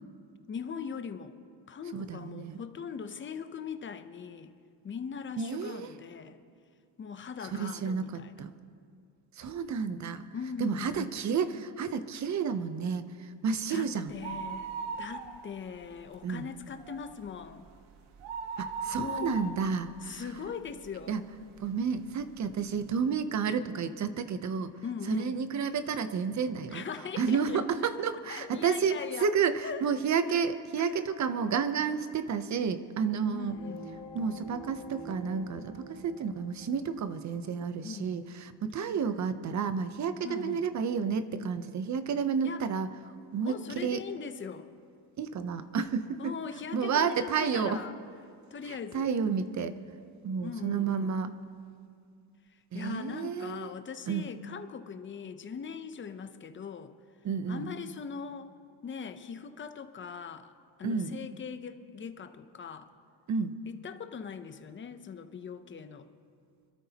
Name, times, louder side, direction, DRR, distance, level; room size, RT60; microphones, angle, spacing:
voice 1, 0.5-1.3 1.7-4.5 4.8-6.4 7.0-8.3 10.3-11.1 13.7-14.7 15.0-17.7 19.0-19.6 20.0-21.2 24.8-25.4 26.7-27.7 28.3-29.3 29.6-29.8 30.3-30.4 30.8-31.0 33.3-33.9 37.8-38.1 40.2-40.7 42.4-42.6 43.5-44.7 46.2-47.9 48.5-49.1 50.4-51.2 52.7-56.9 57.5-58.5 58.8-60.5 60.8-62.9 63.7-66.1, left 6 dB, 25° left, 9 dB, 0.6 m, -40 dB
voice 2, 1.9-2.6 5.4-5.9 7.5-8.5 9.4-10.2 10.6-14.1 16.2-16.5 18.6-20.2 21.1-21.2 21.6-24.7 25.1-26.8 27.2-33.5 34.1-42.9 43.3-44.0 45.2-46.4 46.7-47.8 48.7-49.8 50.2-51.3 52.7-53.7 54.1-54.3 57.2-57.7 60.8-61.2 63.3-63.6, right 6 dB, 35° right, 11 dB, 0.7 m, -31 dB
sound 1, 14.1-15.7 16.1-16.2 16.6-21.0 21.5-21.6 22.4-22.5 22.7-22.8, right 5 dB, 85° right, 1.4 m, -38 dB
sound 2, 33.5-38.3 38.7-38.8, equal, 85° left, 3.2 m, -47 dB
26.0 x 13.0 x 2.9 m, 2.4 s
cardioid pair, 150°, 48 cm